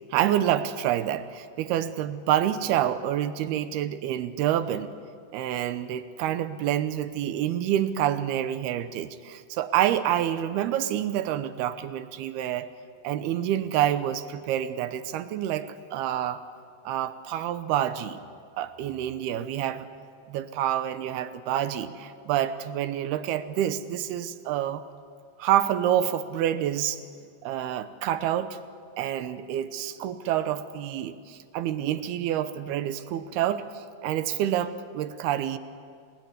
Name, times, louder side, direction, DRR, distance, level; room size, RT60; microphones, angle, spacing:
voice 1, 0.1-4.9 5.3-12.7 13.0-16.4 16.9-18.2 18.5-19.9 20.3-24.8 25.4-27.0 27.4-28.6 29.0-35.6, right 11 dB, 75° right, 12 dB, 2.7 m, -27 dB
29.5 x 20.0 x 9.6 m, 2.1 s
omnidirectional pair, 5.2 m